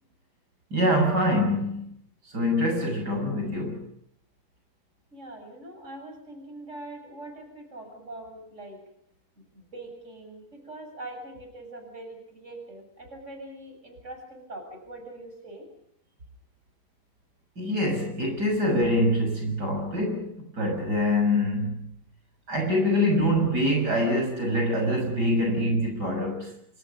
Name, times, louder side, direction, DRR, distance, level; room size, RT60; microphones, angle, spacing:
voice 1, 0.7-1.9 2.3-3.8 17.6-21.9 22.5-26.6, left 1 dB, 75° right, 3 dB, 7.2 m, -25 dB
voice 2, 5.1-8.8 9.5-15.7, right 1 dB, 45° right, 4 dB, 7.6 m, -42 dB
28.0 x 27.0 x 5.4 m, 0.72 s
omnidirectional pair, 1.8 m